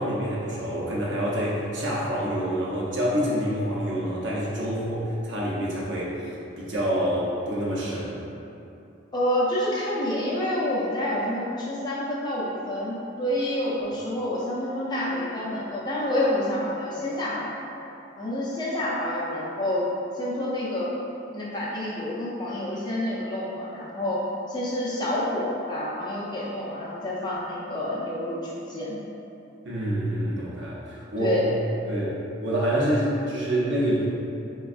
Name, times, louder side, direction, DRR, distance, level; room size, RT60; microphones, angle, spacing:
voice 1, 0.0-8.2 29.6-31.3 31.9-34.0, equal, 70° right, -6 dB, 0.7 m, -27 dB
voice 2, 9.1-17.5 18.2-19.9 20.1-20.9 21.3-24.2 24.5-29.0 31.2-31.5, left 1 dB, 20° left, -7 dB, 0.5 m, -28 dB
4.3 x 2.3 x 2.4 m, 2.8 s
head